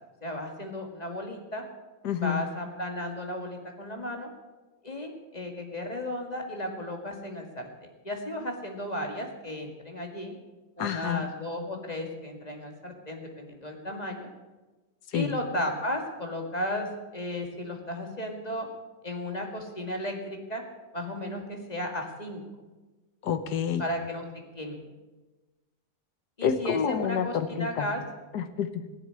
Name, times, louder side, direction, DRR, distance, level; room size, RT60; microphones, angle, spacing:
voice 1, 0.2-1.6 2.1-4.3 4.8-7.7 8.0-10.3 10.8-14.3 15.1-18.7 19.0-20.6 20.9-22.4 23.8-24.2 24.6-24.8 26.4-28.0, left 1 dB, 20° left, 2 dB, 2.1 m, -34 dB
voice 2, 2.0-2.4 10.8-11.2 15.1-15.3 23.2-23.8 26.4-27.9 28.3-28.9, left 8 dB, 60° left, 10 dB, 1.5 m, -28 dB
16.5 x 7.5 x 9.7 m, 1.2 s
omnidirectional pair, 2.1 m